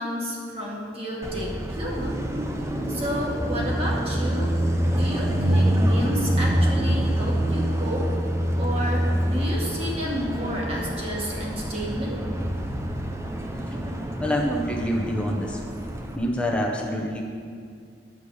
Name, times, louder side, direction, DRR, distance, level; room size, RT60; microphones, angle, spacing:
voice 1, 0.0-2.2 2.7-4.5 5.0-8.1 8.6-12.2, equal, 35° right, -4 dB, 2.2 m, -31 dB
Car passing by, 1.2-16.2, equal, 15° right, 0.7 m, -26 dB
voice 2, 14.2-15.6 16.1-17.2, equal, 5° left, -1 dB, 1.2 m, -26 dB
10.0 x 8.3 x 5.1 m, 2.2 s
head